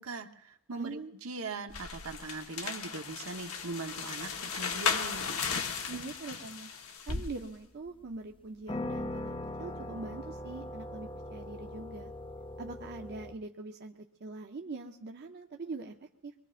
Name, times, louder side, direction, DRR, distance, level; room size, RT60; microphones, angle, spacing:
voice 1, 0.0-5.3, right 3 dB, 75° right, 5 dB, 1.1 m, -40 dB
voice 2, 0.8-1.1 5.9-6.7 7.0-12.1 12.6-15.9 16.2-16.3, right 3 dB, 50° right, 3 dB, 0.7 m, -43 dB
sound 1, 1.7-7.3, left 6 dB, 75° left, 1.2 m, -36 dB
sound 2, 7.1-7.6 8.1-8.2 8.7-13.3, left 1 dB, 25° left, 0.7 m, -39 dB
23.5 x 22.0 x 2.5 m, 0.80 s
head